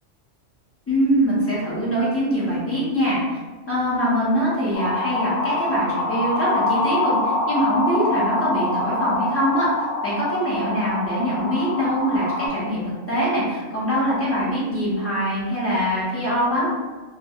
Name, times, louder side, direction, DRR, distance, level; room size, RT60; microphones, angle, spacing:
voice 1, 0.9-3.4 3.7-9.7 10.0-16.7, equal, 15° left, -9 dB, 0.6 m, -23 dB
sound 1, 4.7-12.5, left 2 dB, 90° left, 1.0 m, -25 dB
2.3 x 2.2 x 2.8 m, 1.3 s
omnidirectional pair, 1.3 m